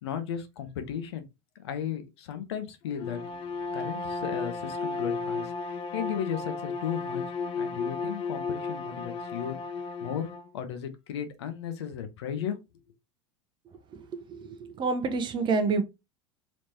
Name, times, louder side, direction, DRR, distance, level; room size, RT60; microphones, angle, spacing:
voice 1, 0.0-1.2 1.6-3.2 3.7-7.2 7.6-9.6 10.0-10.3 10.5-12.6, left 8 dB, 65° left, 0.8 m, -35 dB
Bowed string instrument, 2.9-10.5, left 4 dB, 35° left, 0.4 m, -34 dB
voice 2, 14.3-15.8, right 4 dB, 30° right, 0.7 m, -27 dB
3.3 x 3.0 x 2.8 m
figure-of-eight pair, 80°, 15 cm